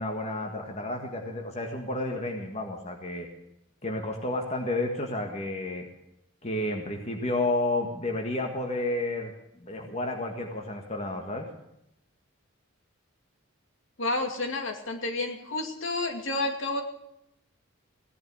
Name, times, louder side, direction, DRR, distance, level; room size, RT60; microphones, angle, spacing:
voice 1, 0.0-3.3 3.8-5.9 6.4-9.3 9.6-11.5, left 2 dB, 30° left, 2 dB, 1.7 m, -31 dB
voice 2, 14.0-16.8, left 2 dB, 65° left, 4 dB, 2.5 m, -30 dB
17.0 x 10.5 x 6.3 m, 0.81 s
head